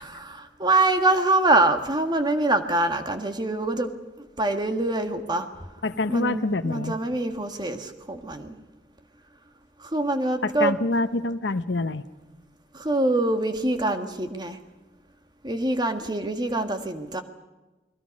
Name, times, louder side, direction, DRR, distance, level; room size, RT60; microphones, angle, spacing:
voice 1, 0.0-3.9 4.4-5.5 6.1-8.6 9.8-10.7 12.7-14.6 15.4-17.2, right 2 dB, 25° right, 6 dB, 1.6 m, -24 dB
voice 2, 5.8-7.0 10.4-12.0, left 2 dB, 80° left, 10 dB, 0.9 m, -26 dB
29.5 x 20.5 x 5.3 m, 1.1 s
head